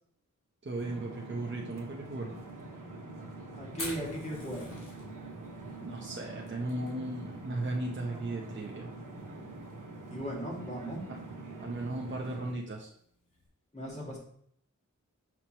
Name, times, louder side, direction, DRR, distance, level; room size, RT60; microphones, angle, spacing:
voice 1, 0.6-2.3 5.8-8.9 11.1-11.2 11.6-12.9, right 2 dB, 35° right, -2 dB, 0.8 m, -36 dB
sound 1, 0.8-12.5, right 2 dB, 85° right, 1.1 m, -45 dB
voice 2, 3.5-4.7 10.1-11.0 13.7-14.2, equal, 20° left, -4 dB, 2.3 m, -37 dB
Fire, 3.7-13.5, left 1 dB, 85° left, 2.0 m, -49 dB
6.0 x 5.6 x 3.0 m, 0.64 s
wide cardioid pair, 75°, 31 cm